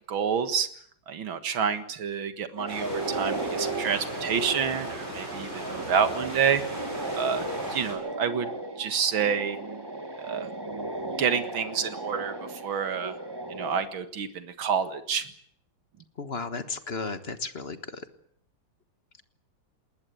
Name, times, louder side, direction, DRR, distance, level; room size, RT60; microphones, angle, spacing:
voice 1, 0.1-0.7 1.1-6.6 7.2-8.5 8.8-9.6 10.2-10.5 11.2-13.2 13.5-15.3, right 7 dB, 80° right, 10 dB, 2.5 m, -28 dB
sound 1, 2.6-13.8, right 2 dB, 15° right, 1.6 m, -35 dB
sound 2, 2.7-7.9, right 1 dB, 30° right, 8.4 m, -38 dB
voice 2, 16.2-18.0, left 4 dB, 35° left, 10 dB, 1.4 m, -34 dB
20.0 x 20.0 x 9.3 m, 0.64 s
omnidirectional pair, 2.2 m